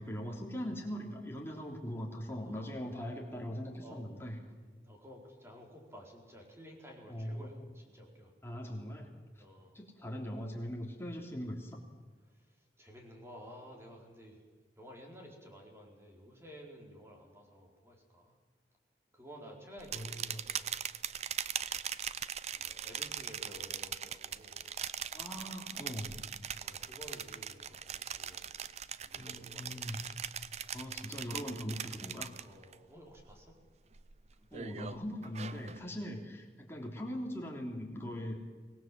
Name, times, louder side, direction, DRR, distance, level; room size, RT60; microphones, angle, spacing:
voice 1, 0.0-4.4 7.0-7.5 8.4-9.1 9.7-11.8 19.9-20.4 25.1-26.2 29.1-30.0 30.7-32.3 34.5-38.5, equal, 15° left, 0 dB, 3.4 m, -41 dB
voice 2, 2.5-2.9 3.8-4.2 4.4-8.3 9.4-9.8 12.3-14.4 14.8-18.3 19.1-20.7 22.5-24.6 26.5-28.6 29.0-30.0 31.8-31.9 32.4-33.6 36.1-36.2, equal, 15° right, 1 dB, 4.3 m, -53 dB
sound 1, 19.8-32.7 33.1-33.5 33.9-35.8, right 8 dB, 40° right, 0.6 m, -41 dB
24.5 x 19.0 x 7.7 m, 1.4 s
head